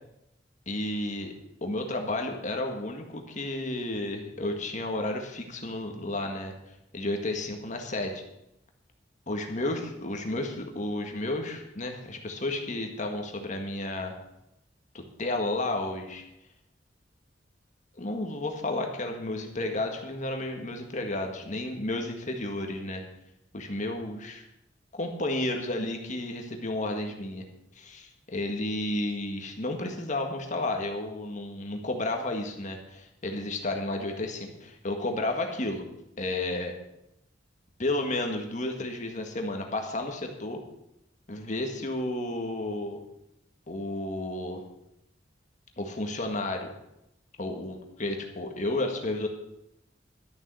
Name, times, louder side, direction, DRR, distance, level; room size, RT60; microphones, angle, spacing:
voice 1, 0.7-1.3 1.6-6.5 6.9-8.2 9.3-14.1 14.9-16.2 18.0-23.0 23.5-24.4 24.9-27.5 27.8-35.9 36.2-36.7 37.8-40.6 41.3-43.0 43.7-44.6 45.8-46.7 47.4-49.3, left 2 dB, 45° left, 4 dB, 1.8 m, -32 dB
12.5 x 7.4 x 7.7 m, 0.84 s
head